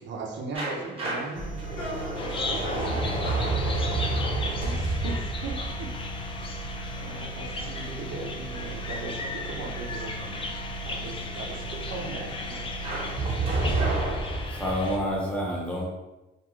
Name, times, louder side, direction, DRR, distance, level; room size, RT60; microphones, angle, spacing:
voice 1, 0.0-1.6 4.6-5.9 6.4-6.7 7.0-10.6 10.8-12.8 13.6-14.0, right 3 dB, 70° right, 1 dB, 0.5 m, -38 dB
sound 1, 0.5-7.3 12.8-15.1, right 2 dB, 30° right, 0.9 m, -30 dB
sound 2, 1.3-14.3, right 1 dB, 55° left, 1.3 m, -38 dB
voice 2, 1.4-4.1, left 1 dB, 75° left, -4 dB, 0.9 m, -38 dB
Bird vocalization bird call bird song, 2.2-15.0, left 3 dB, 30° left, 0.3 m, -37 dB
voice 3, 14.4-15.9, equal, 5° left, -4 dB, 0.8 m, -29 dB
2.4 x 2.3 x 3.0 m, 1.1 s
cardioid pair, 90°, 20 cm